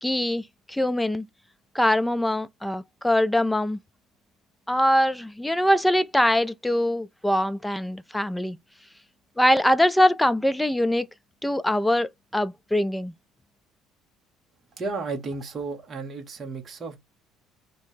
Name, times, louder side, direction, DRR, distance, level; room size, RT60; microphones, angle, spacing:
voice 1, 0.0-0.4 0.7-1.2 1.7-3.8 4.7-8.6 9.4-11.1 11.4-13.1, left 1 dB, 5° left, 0.4 m, -23 dB
voice 2, 14.8-17.0, right 3 dB, 25° right, 1.0 m, -33 dB
3.1 x 2.9 x 4.4 m
cardioid pair, 160°, 0 cm